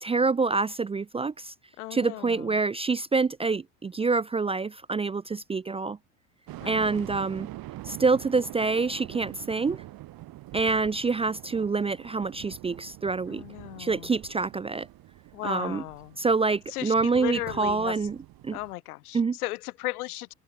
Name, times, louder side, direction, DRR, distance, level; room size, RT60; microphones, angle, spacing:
voice 1, 0.0-1.5 1.9-6.0 6.7-7.5 7.8-9.8 10.5-13.4 13.8-14.9 15.4-15.8 16.2-18.2 18.4-18.6 19.1-19.4, right 4 dB, 15° right, 0.5 m, -26 dB
voice 2, 1.8-2.6 6.6-7.0 13.3-14.1 15.3-16.2 16.7-18.0 18.5-20.3, left 18 dB, 80° left, 2.8 m, -36 dB
sound 1, 6.5-18.7, right 16 dB, 55° right, 2.2 m, -44 dB
hypercardioid pair, 80°, 44 cm